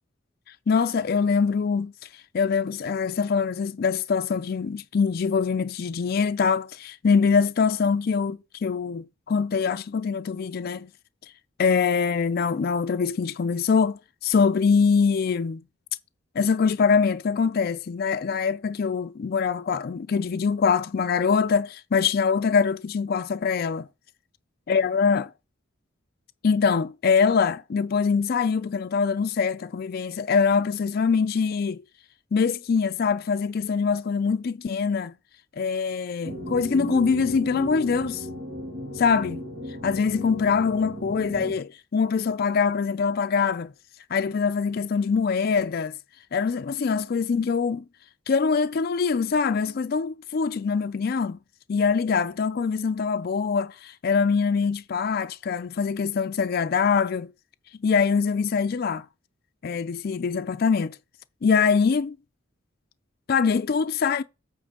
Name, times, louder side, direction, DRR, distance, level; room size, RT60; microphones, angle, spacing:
voice 1, 0.7-1.9 2.3-10.9 11.6-15.6 16.4-23.9 24.7-25.3 26.4-31.8 32.3-35.1 35.6-38.3 39.0-39.4 39.8-43.7 44.1-46.0 46.3-47.8 48.3-51.4 51.7-57.3 57.8-59.0 59.6-61.0 61.4-62.2 63.3-64.2, left 5 dB, 50° left, 0.4 m, -23 dB
sound 1, 36.2-41.5, equal, 65° right, 1.9 m, -36 dB
8.6 x 3.2 x 6.5 m
head